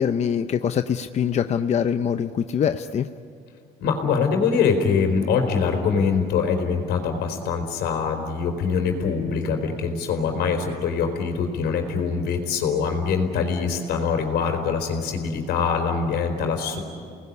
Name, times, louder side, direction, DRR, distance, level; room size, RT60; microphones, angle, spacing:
voice 1, 0.0-3.1, left 8 dB, 40° left, 9 dB, 0.7 m, -23 dB
voice 2, 3.8-16.8, left 5 dB, 80° left, 4 dB, 4.5 m, -23 dB
30.0 x 20.0 x 9.8 m, 2.4 s
cardioid pair, 110°, 17 cm